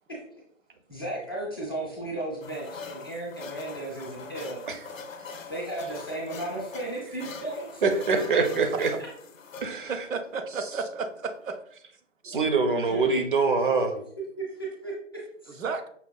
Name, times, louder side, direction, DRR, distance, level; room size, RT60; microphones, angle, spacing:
voice 1, 0.9-4.6 5.5-7.8 12.9-13.2 14.4-15.6, right 2 dB, 20° left, -5 dB, 0.4 m, -35 dB
sound 1, 2.4-11.6, left 5 dB, 85° left, 0.6 m, -44 dB
voice 2, 7.8-8.9 9.6-10.1 10.6-10.7 12.2-13.9, right 4 dB, 45° right, 6 dB, 0.5 m, -24 dB
voice 3, 9.9-11.6 12.3-12.4 15.6-15.9, right 4 dB, 90° right, 6 dB, 0.6 m, -32 dB
5.3 x 2.2 x 2.2 m, 0.63 s
figure-of-eight pair, 150°, 39 cm